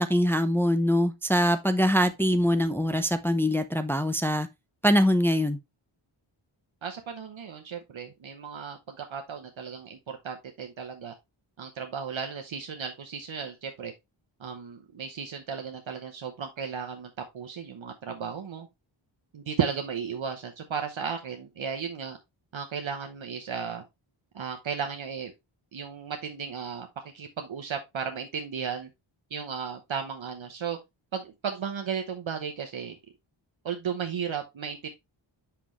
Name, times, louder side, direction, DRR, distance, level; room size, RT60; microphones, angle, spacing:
voice 1, 0.0-4.5 4.8-5.6, equal, 5° left, 0.6 m, -23 dB
voice 2, 6.8-11.1 11.6-13.9 14.4-18.7 19.3-22.2 22.5-23.8 24.3-25.3 25.7-26.9 27.1-28.9 29.3-30.8 31.1-33.0 33.6-34.9, right 6 dB, 65° right, 1.0 m, -34 dB
6.0 x 5.7 x 3.1 m
wide cardioid pair, 90°, 49 cm